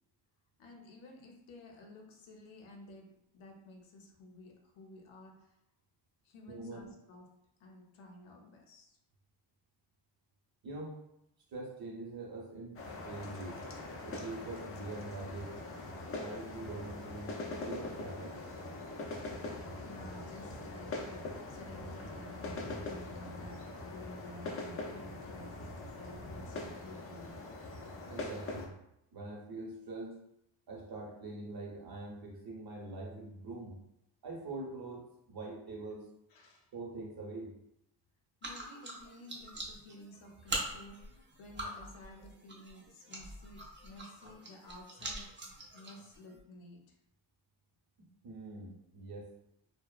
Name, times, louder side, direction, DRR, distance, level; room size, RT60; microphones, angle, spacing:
voice 1, 0.6-5.6 6.2-7.3 7.6-9.0 19.7-27.4 36.3-36.7 38.4-47.0, left 2 dB, 80° left, 2 dB, 0.7 m, -53 dB
voice 2, 6.5-6.9 10.6-10.9 11.5-12.8 13.0-13.6 14.0-15.5 16.2-17.3 17.6-18.4 28.1-28.7 29.1-30.2 30.7-33.8 34.2-36.1 36.7-37.5 48.2-49.3, right 2 dB, 50° right, -2 dB, 0.8 m, -43 dB
sound 1, 12.8-28.7, left 2 dB, 30° left, 0.4 m, -42 dB
sound 2, 38.4-46.4, right 1 dB, 25° right, 0.6 m, -44 dB
2.8 x 2.1 x 2.3 m, 0.80 s
cardioid pair, 115°, 47 cm